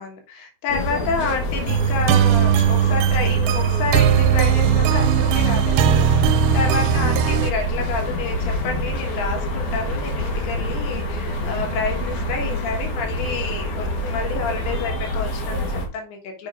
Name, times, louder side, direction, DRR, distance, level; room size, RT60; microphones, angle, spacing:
voice 1, 0.0-16.5, left 5 dB, 80° left, 1 dB, 3.4 m, -29 dB
sound 1, 0.7-15.9, equal, 55° left, 2.6 m, -26 dB
sound 2, 1.7-7.5, right 9 dB, 85° right, 2.5 m, -18 dB
7.3 x 5.1 x 3.7 m, 0.36 s
omnidirectional pair, 4.5 m